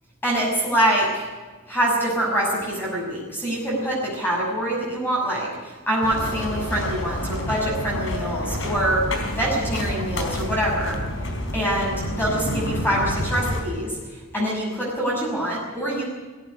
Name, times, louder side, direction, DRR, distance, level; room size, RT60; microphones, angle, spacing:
voice 1, 0.2-1.3 1.7-9.0 9.3-11.0 11.5-16.1, right 1 dB, 10° left, -4 dB, 6.2 m, -25 dB
sound 1, 6.0-13.6, left 1 dB, 65° left, 3.8 m, -28 dB
17.5 x 16.0 x 9.8 m, 1.4 s
head